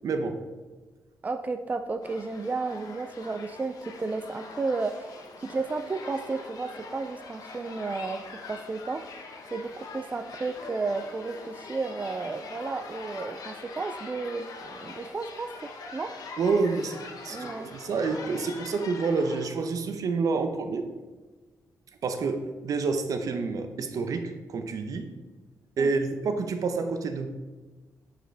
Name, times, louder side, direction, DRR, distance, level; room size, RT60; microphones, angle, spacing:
voice 1, 0.0-0.4 16.4-17.0 17.2-20.9 22.0-25.1 25.8-27.3, right 4 dB, 65° right, 7 dB, 0.7 m, -28 dB
voice 2, 1.2-9.0 9.5-16.1 17.3-17.7 25.8-26.0, right 3 dB, 25° right, 8 dB, 0.3 m, -33 dB
sound 1, 2.0-19.4, left 3 dB, 70° left, 1.0 m, -43 dB
8.8 x 4.9 x 3.3 m, 1.2 s
cardioid pair, 90°, 6 cm